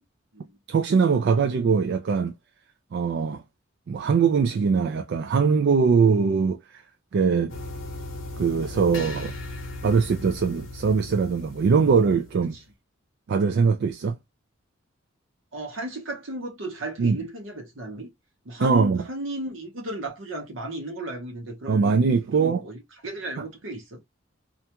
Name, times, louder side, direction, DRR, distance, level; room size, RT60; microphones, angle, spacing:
voice 1, 0.7-2.3 2.9-3.4 3.9-6.6 7.1-7.5 8.4-9.4 9.8-12.6 13.3-14.2 17.0-17.2 18.6-19.0 21.7-22.6 23.4-23.5, right 5 dB, 60° right, 0.3 m, -22 dB
sound 1, 7.5-12.6, left 2 dB, 70° left, 0.8 m, -38 dB
voice 2, 15.5-18.1 18.4-21.9 22.3-24.0, right 1 dB, 75° right, 0.9 m, -34 dB
2.5 x 2.2 x 2.8 m
head